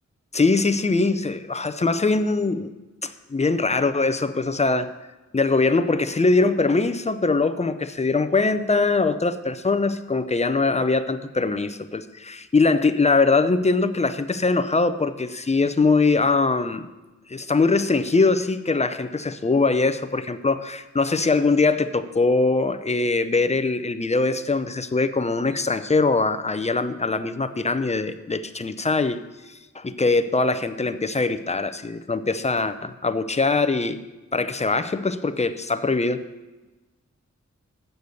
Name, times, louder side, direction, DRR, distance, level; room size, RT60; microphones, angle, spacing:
voice 1, 0.3-2.7 3.0-4.9 5.3-16.9 17.3-29.2 29.7-34.0 34.3-36.2, left 3 dB, 25° left, 10 dB, 0.5 m, -22 dB
7.8 x 6.6 x 7.0 m, 1.2 s
wide cardioid pair, 100°, 29 cm